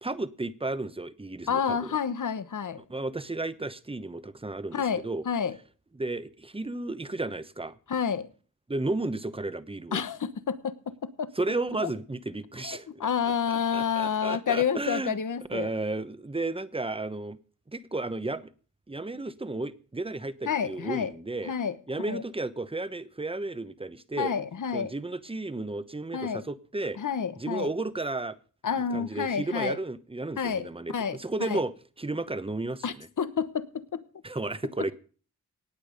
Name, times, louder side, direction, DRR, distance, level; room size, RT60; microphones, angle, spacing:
voice 1, 0.0-2.0 2.9-5.2 6.0-7.8 8.7-10.0 11.4-13.1 13.5-15.2 15.5-17.4 17.7-18.5 18.9-21.5 21.9-24.3 24.7-27.0 27.4-28.4 28.8-32.8 34.2-34.9, right 2 dB, 20° right, 1.0 m, -33 dB
voice 2, 1.5-2.8 4.7-5.6 7.9-8.3 9.9-11.3 11.8-11.9 12.6-15.7 20.5-21.1 21.4-22.2 24.2-24.9 26.1-26.5 27.0-27.7 28.6-29.8 30.4-31.6 32.8-34.0 34.8-34.9, left 7 dB, 80° left, 1.2 m, -29 dB
18.5 x 8.5 x 5.2 m
wide cardioid pair, 95°, 31 cm